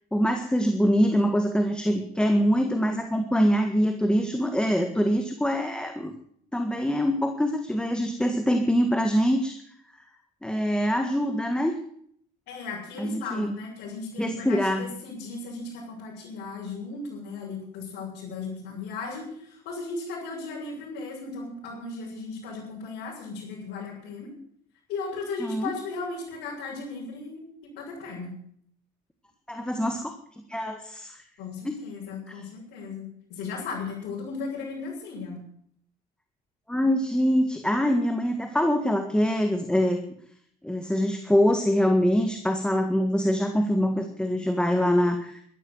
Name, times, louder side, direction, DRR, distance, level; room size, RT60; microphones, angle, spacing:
voice 1, 0.1-6.1 6.5-9.6 10.4-11.7 13.0-13.6 14.2-14.9 25.4-25.7 29.5-30.1 30.5-31.2 31.6-31.8 36.7-40.0 40.6-45.4, equal, 5° left, 5 dB, 1.7 m, -24 dB
voice 2, 12.5-24.3 24.9-28.3 31.4-35.4, left 4 dB, 85° left, -6 dB, 6.9 m, -36 dB
12.5 x 12.5 x 8.0 m, 0.65 s
cardioid pair, 110°, 17 cm